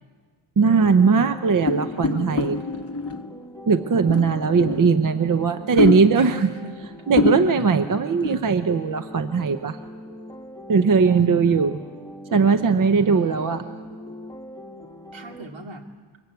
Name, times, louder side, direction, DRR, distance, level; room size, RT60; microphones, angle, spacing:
sound 1, 0.6-15.5, equal, 10° left, 1.2 m, -41 dB
voice 1, 0.6-2.5 3.7-6.3 7.1-9.8 10.7-11.7 12.3-13.6, right 5 dB, 40° right, 9 dB, 0.7 m, -19 dB
sound 2, 1.6-3.4 4.1-5.2 5.8-6.4 6.8-6.9 7.1-7.8 8.2-8.5, left 3 dB, 30° left, 0.9 m, -26 dB
voice 2, 1.9-2.6 5.7-5.9 6.1-6.8 7.6-7.7 11.1-11.4 13.0-14.3 15.1-15.8, right 1 dB, 70° right, 3 dB, 2.6 m, -38 dB
26.5 x 23.5 x 8.2 m, 1.5 s
wide cardioid pair, 170°, 48 cm